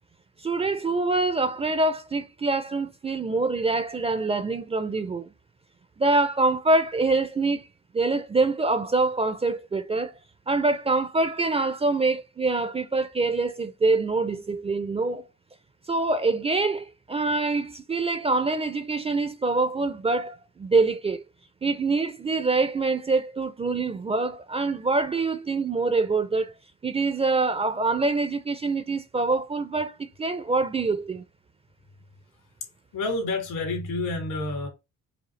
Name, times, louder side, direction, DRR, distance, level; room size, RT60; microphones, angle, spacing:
voice 1, 0.4-5.3 6.0-7.6 7.9-10.1 10.5-15.3 15.9-21.2 21.6-26.5 26.8-31.2, right 3 dB, 20° right, 0.4 m, -25 dB
voice 2, 32.9-34.7, left 2 dB, 75° left, 2.3 m, -29 dB
4.9 x 2.7 x 3.1 m
cardioid pair, 90°, 32 cm